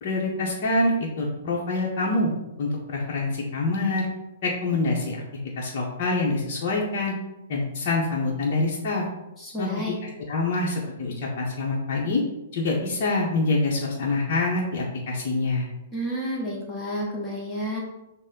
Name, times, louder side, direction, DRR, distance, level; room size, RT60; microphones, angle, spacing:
voice 1, 0.0-2.3 2.6-4.1 4.4-5.2 5.6-7.1 7.5-9.0 9.6-9.7 10.3-12.2 12.5-15.7, left 2 dB, 45° left, -4 dB, 0.9 m, -25 dB
voice 2, 9.4-10.0 15.9-17.8, equal, 20° left, -4 dB, 1.4 m, -30 dB
6.3 x 2.2 x 3.8 m, 0.95 s
hypercardioid pair, 120°, 0 cm